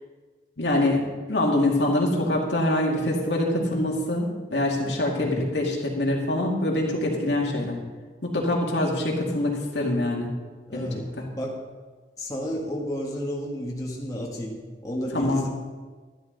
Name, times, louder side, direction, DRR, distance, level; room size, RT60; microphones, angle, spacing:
voice 1, 0.6-1.0 1.3-7.8 8.2-10.3 10.7-10.9 11.2-11.3 15.1-15.4, left 1 dB, 85° left, -1 dB, 2.2 m, -24 dB
voice 2, 5.1-5.5 10.7-11.1 11.3-11.6 12.2-15.5, equal, 20° left, -3 dB, 1.6 m, -32 dB
12.5 x 11.0 x 4.0 m, 1.4 s
head